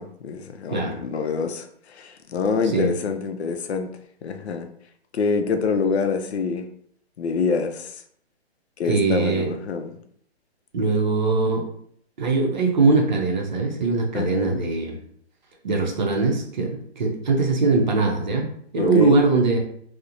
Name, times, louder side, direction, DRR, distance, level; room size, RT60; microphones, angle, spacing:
voice 1, 0.0-3.9 4.2-4.7 5.1-6.7 7.2-8.0 8.8-10.0 14.1-14.7 18.8-19.2, left 5 dB, 75° left, 6 dB, 0.5 m, -26 dB
voice 2, 8.8-9.5 10.7-11.7 12.2-15.0 15.6-19.6, right 3 dB, 45° right, 1 dB, 0.6 m, -21 dB
2.8 x 2.1 x 2.5 m, 0.65 s
hypercardioid pair, 165°, 32 cm